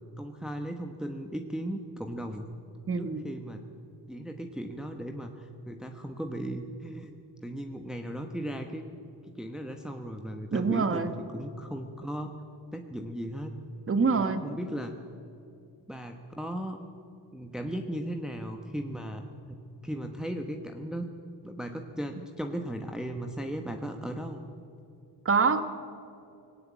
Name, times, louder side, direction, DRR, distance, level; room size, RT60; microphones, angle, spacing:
voice 1, 0.2-2.5 2.9-3.6 4.1-8.8 9.2-12.3 12.7-13.5 14.1-14.9 15.9-16.8 17.3-19.6 19.8-21.1 21.4-24.4, equal, ahead, 4 dB, 1.1 m, -37 dB
voice 2, 2.9-3.2 10.5-11.1 13.9-14.4 25.2-25.6, right 5 dB, 30° right, 10 dB, 1.3 m, -25 dB
19.5 x 17.5 x 8.3 m, 2.6 s
cardioid pair, 110°, 45 cm